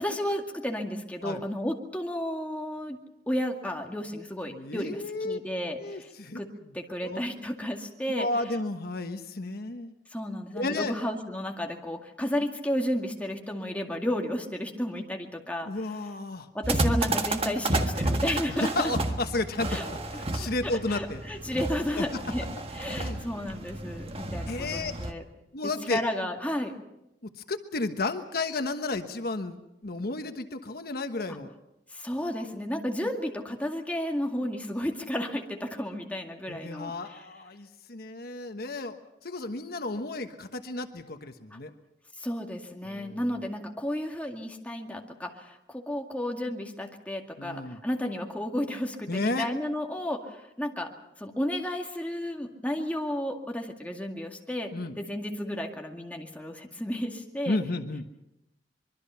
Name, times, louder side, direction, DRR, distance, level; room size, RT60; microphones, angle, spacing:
voice 1, 0.0-3.0 3.3-6.1 6.3-6.5 6.7-8.3 10.1-15.7 16.5-18.7 19.7-19.8 20.4-22.4 22.7-25.2 25.6-26.7 31.9-37.2 42.2-50.9 51.2-57.6, left 1 dB, 10° left, 2 dB, 2.1 m, -32 dB
voice 2, 4.5-5.4 5.8-6.4 7.0-7.2 8.1-9.9 10.5-10.9 15.7-16.5 18.5-21.2 22.0-22.2 22.9-23.3 24.5-24.9 25.5-26.0 27.4-31.5 36.5-39.0 39.2-41.7 42.8-43.2 47.4-47.8 49.1-49.5 54.7-54.9 57.5-58.0, left 2 dB, 60° left, 7 dB, 1.3 m, -32 dB
sound 1, 16.6-25.1, right 2 dB, 35° right, 1.6 m, -31 dB
24.5 x 23.0 x 5.7 m, 0.88 s
head